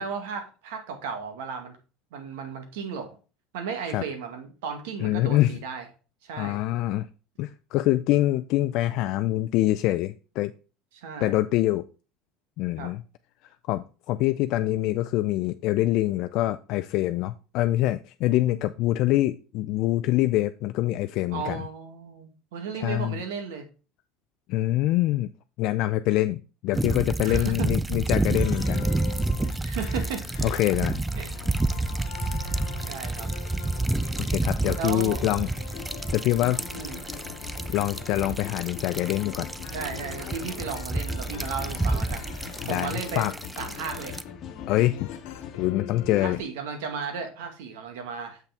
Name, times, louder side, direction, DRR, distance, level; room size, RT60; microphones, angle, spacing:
voice 1, 0.0-1.8 2.1-3.1 3.5-5.9 6.2-6.6 10.9-11.4 12.8-12.9 18.2-18.6 21.3-23.6 27.2-27.7 29.6-30.2 31.2-31.3 32.4-32.5 32.8-33.3 34.8-35.2 36.7-37.0 39.7-42.3 42.7-43.3 43.6-44.2 46.2-48.4, right 6 dB, 85° right, 5 dB, 1.7 m, -35 dB
voice 2, 5.0-5.6 6.4-7.1 7.4-10.5 11.2-11.8 12.6-13.0 13.6-21.6 22.8-23.2 24.5-25.3 25.6-28.9 30.4-31.0 34.2-35.5 36.1-36.6 37.7-39.5 42.7-43.3 44.7-45.1 45.6-46.4, left 15 dB, 60° left, 10 dB, 0.4 m, -25 dB
sound 1, 26.7-44.2, right 2 dB, 10° right, 0.4 m, -29 dB
sound 2, 28.3-46.4, left 8 dB, 80° left, 1.2 m, -43 dB
sound 3, 35.7-45.7, left 8 dB, 45° left, 1.2 m, -42 dB
6.9 x 5.7 x 3.5 m, 0.34 s
supercardioid pair, 105°, 0 cm